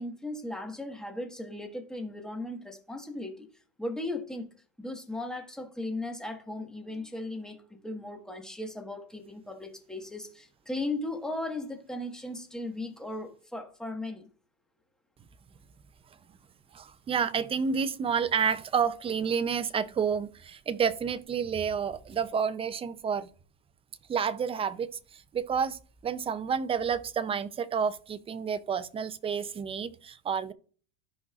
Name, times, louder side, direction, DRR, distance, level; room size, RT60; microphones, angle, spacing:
voice 1, 0.0-3.5 3.8-4.5 4.8-14.3, left 2 dB, ahead, 1.4 m, -37 dB
voice 2, 16.7-23.3 24.1-30.5, right 6 dB, 15° right, 0.4 m, -30 dB
13.5 x 5.4 x 2.4 m
supercardioid pair, 125°, 37 cm